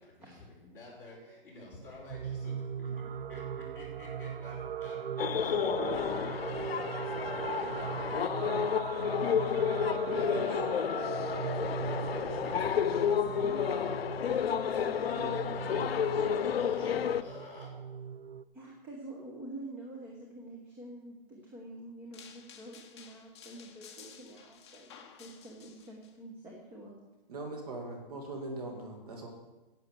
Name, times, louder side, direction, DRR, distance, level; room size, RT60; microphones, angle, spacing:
voice 1, 0.0-13.8 14.2-18.2, left 2 dB, 10° left, -9 dB, 4.2 m, -52 dB
sound 1, 2.1-18.4, right 7 dB, 75° right, 0.8 m, -39 dB
sound 2, 5.2-17.2, left 8 dB, 85° left, 0.7 m, -31 dB
voice 2, 13.4-13.9 18.5-27.0, right 1 dB, 5° right, -2 dB, 0.9 m, -47 dB
sound 3, 22.1-26.1, left 7 dB, 30° left, 1.0 m, -53 dB
voice 3, 27.3-29.3, right 2 dB, 40° right, 1 dB, 2.1 m, -40 dB
10.5 x 8.0 x 7.4 m, 1.1 s
hypercardioid pair, 170°, 29 cm